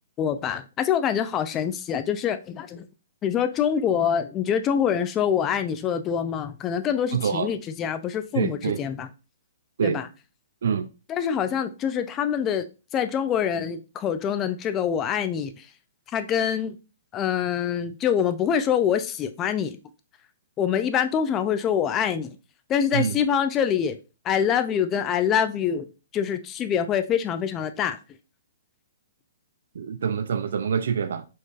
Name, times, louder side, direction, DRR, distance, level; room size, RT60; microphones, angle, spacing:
voice 1, 0.2-2.9 3.2-9.1 9.8-10.1 11.1-12.6 12.9-15.6 16.1-16.8 17.1-19.8 20.6-22.3 22.7-24.0 24.2-25.9 26.1-28.0, left 8 dB, 25° left, 0.4 m, -25 dB
voice 2, 7.1-7.5 8.3-8.8 9.8-10.0 10.6-10.9 22.9-23.2 29.7-31.3, right 7 dB, 70° right, 0.3 m, -25 dB
4.3 x 3.1 x 2.4 m
hypercardioid pair, 135°, 0 cm